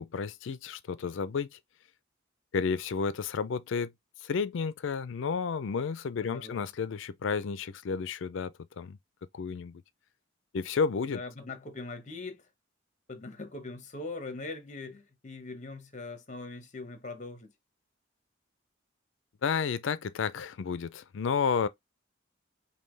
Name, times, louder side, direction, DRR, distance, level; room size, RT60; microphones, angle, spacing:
voice 1, 0.0-1.5 2.5-3.9 4.2-9.0 9.3-9.8 10.5-11.2 19.4-21.7, left 5 dB, 70° left, 0.4 m, -31 dB
voice 2, 6.2-6.6 11.1-12.5 13.1-17.5, left 3 dB, 40° left, 0.9 m, -41 dB
5.5 x 2.2 x 3.2 m
head